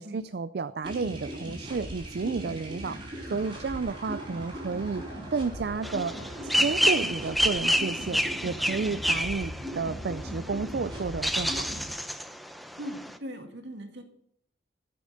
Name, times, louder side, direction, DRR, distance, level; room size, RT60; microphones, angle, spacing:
voice 1, 0.0-3.0 3.3-5.0 5.3-6.2 6.4-11.7, right 4 dB, 60° right, 13 dB, 0.4 m, -31 dB
sound 1, 0.8-11.9, equal, 25° right, 5.1 m, -39 dB
sound 2, 5.8-13.2, equal, ahead, 0.6 m, -29 dB
voice 2, 12.8-14.0, equal, 75° right, 4 dB, 2.1 m, -39 dB
13.0 x 8.5 x 6.6 m, 0.70 s
head